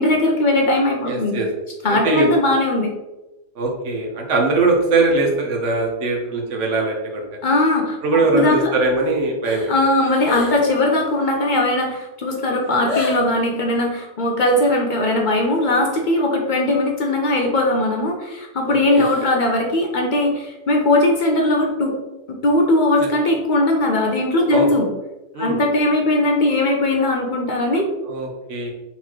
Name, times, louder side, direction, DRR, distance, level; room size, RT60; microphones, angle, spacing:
voice 1, 0.0-1.4 1.8-2.9 7.4-8.7 9.7-22.0 22.3-24.9 25.4-27.9, left 1 dB, 50° left, 1 dB, 0.7 m, -19 dB
voice 2, 1.1-1.5 1.9-2.4 3.6-7.3 8.0-9.7 18.7-19.1 24.5-24.7 25.3-25.6 28.0-28.7, right 3 dB, 85° right, 1 dB, 1.3 m, -21 dB
sound 1, 9.4-10.7 11.0-11.4 12.0-12.1 12.3-13.4 18.8-19.4 19.7-19.8, left 2 dB, 80° left, 1.2 m, -31 dB
4.1 x 4.1 x 3.0 m, 1.0 s
omnidirectional pair, 1.2 m